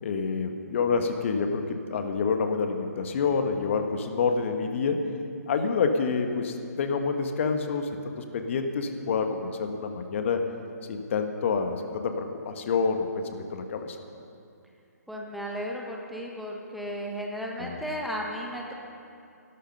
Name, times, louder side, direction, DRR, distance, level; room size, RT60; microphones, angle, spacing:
voice 1, 0.0-5.0 5.5-10.4 10.9-14.0 17.6-17.8, left 5 dB, 45° left, 6 dB, 1.4 m, -28 dB
voice 2, 15.1-18.7, equal, ahead, -1 dB, 1.4 m, -34 dB
14.5 x 12.5 x 5.5 m, 2.5 s
figure-of-eight pair, 135°, 9 cm